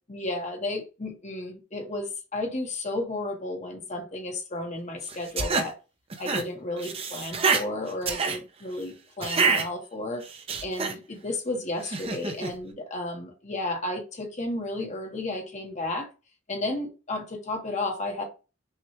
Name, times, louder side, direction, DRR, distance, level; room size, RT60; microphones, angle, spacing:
voice 1, 0.1-5.7 6.2-10.2 10.6-16.1 16.5-18.2, left 2 dB, 35° left, 0.9 m, -33 dB
sound 1, 5.1-5.7 6.1-6.4 6.8-7.6 8.0-8.4 9.2-9.6 10.2-10.9 11.8-12.5, right 4 dB, 30° right, 0.6 m, -26 dB
5.7 x 2.2 x 2.9 m
head